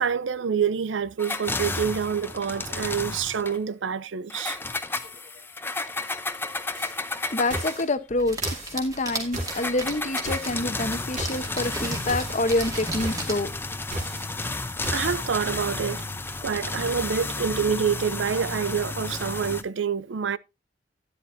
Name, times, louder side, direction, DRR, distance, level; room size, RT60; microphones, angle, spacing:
voice 1, 0.0-4.6 14.4-14.5 14.9-16.0 16.4-20.4, right 7 dB, 90° right, 0.5 m, -27 dB
sound 1, 1.2-3.6 4.3-7.9 9.5-19.6, left 3 dB, 10° left, 0.7 m, -32 dB
sound 2, 6.8-6.9 7.5-7.8 8.4-8.7 9.3-9.7 10.2-10.6 11.2-11.5 12.1-12.4 13.0-13.3 13.9-14.2 14.8-15.2, right 1 dB, 40° right, 3.8 m, -33 dB
voice 2, 7.3-13.5, left 2 dB, 40° left, 1.0 m, -27 dB
sound 3, 8.2-13.4, right 2 dB, 20° right, 2.4 m, -35 dB
12.5 x 10.0 x 2.7 m
head